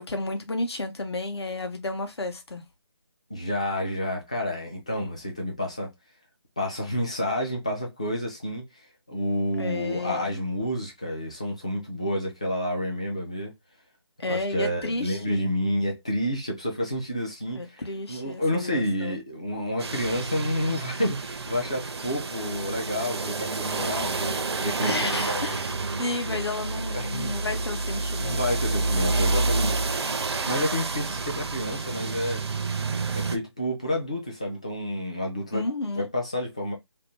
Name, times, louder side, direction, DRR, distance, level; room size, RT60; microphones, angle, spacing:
voice 1, 0.0-2.6 9.6-10.3 14.2-15.5 17.6-19.2 24.8-25.7 26.0-28.9 35.5-36.0, left 2 dB, 65° left, 0.8 m, -32 dB
voice 2, 3.3-5.9 6.6-8.6 9.1-13.5 14.2-17.8 18.1-25.6 26.3-26.4 26.9-27.4 28.2-29.8 30.4-32.4 33.1-35.6 36.0-36.7, left 1 dB, 15° left, 0.3 m, -29 dB
sound 1, 19.8-33.4, right 3 dB, 65° right, 0.5 m, -29 dB
2.6 x 2.1 x 3.0 m
figure-of-eight pair, 165°, 14 cm